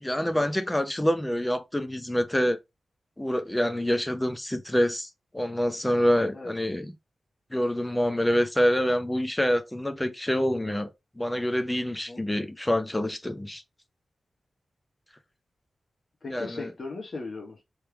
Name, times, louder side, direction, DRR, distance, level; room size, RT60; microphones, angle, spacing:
voice 1, 0.0-2.6 3.2-6.9 7.5-13.6 16.3-16.7, equal, 10° left, 0.6 m, -26 dB
voice 2, 16.2-17.6, left 3 dB, 45° left, 1.0 m, -38 dB
3.5 x 3.2 x 4.5 m
wide cardioid pair, 135°, 0 cm